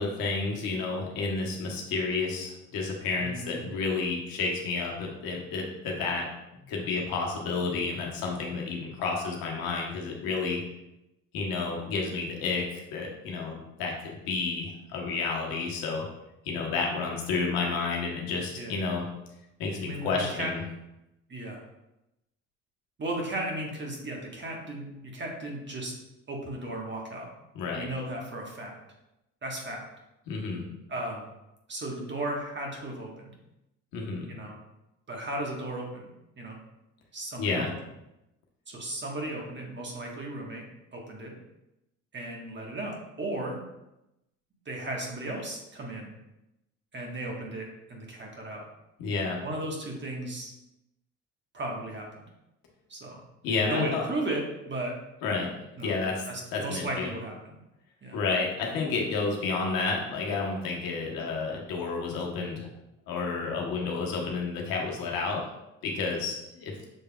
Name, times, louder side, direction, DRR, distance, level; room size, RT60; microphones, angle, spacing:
voice 1, 0.0-6.3 6.7-10.6 11.3-16.0 16.4-19.1 19.6-20.6 27.5-27.9 30.3-30.6 33.9-34.3 37.4-37.7 49.0-49.4 53.4-54.0 55.2-55.5 55.8-57.1 58.1-62.7 63.1-65.4 65.8-66.7, left 4 dB, 70° left, -1 dB, 1.2 m, -30 dB
voice 2, 3.2-3.6 18.6-18.8 19.8-20.5 21.3-21.6 23.0-25.9 26.3-27.3 27.7-28.7 29.4-29.8 30.9-31.3 31.7-33.3 34.3-34.5 35.1-36.1 36.4-36.6 37.1-37.6 38.7-40.6 40.9-41.3 42.1-43.6 44.6-46.1 46.9-48.6 49.4-50.5 51.5-52.3 52.9-53.2 53.7-54.9 55.8-55.9 56.3-57.6 58.0-58.2, right 1 dB, 30° right, -1 dB, 1.4 m, -35 dB
6.5 x 3.4 x 2.3 m, 0.92 s
supercardioid pair, 80°, 36 cm